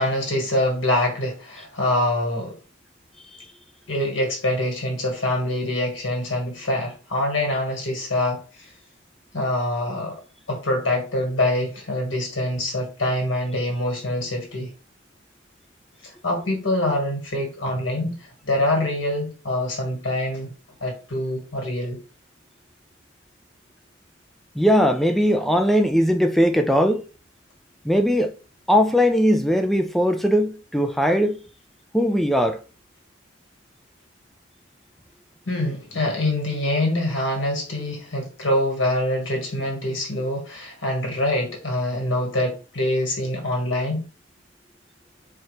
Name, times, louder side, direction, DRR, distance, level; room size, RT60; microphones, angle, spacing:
voice 1, 0.0-2.6 3.9-8.7 9.3-10.2 10.5-14.7 16.0-18.2 18.4-20.5 20.8-22.0 35.5-44.1, left 1 dB, 80° left, 1.6 m, -25 dB
voice 2, 24.6-27.0 27.8-28.3 28.7-31.4 31.9-32.6, equal, ahead, 0.3 m, -19 dB
4.4 x 2.4 x 3.2 m
head